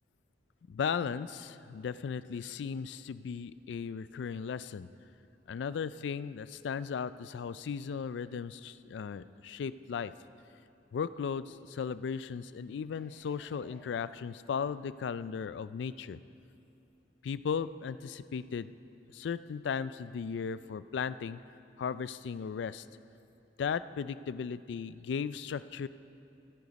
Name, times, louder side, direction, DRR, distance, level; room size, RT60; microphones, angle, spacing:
voice 1, 0.7-4.9 5.5-10.1 10.9-16.2 17.2-18.7 19.1-21.4 21.8-22.9 23.6-25.9, left 6 dB, 90° left, 15 dB, 0.3 m, -36 dB
sound 1, 12.9-14.9 15.4-15.5, left 1 dB, 60° left, 1.5 m, -60 dB
14.5 x 9.8 x 5.2 m, 2.7 s
head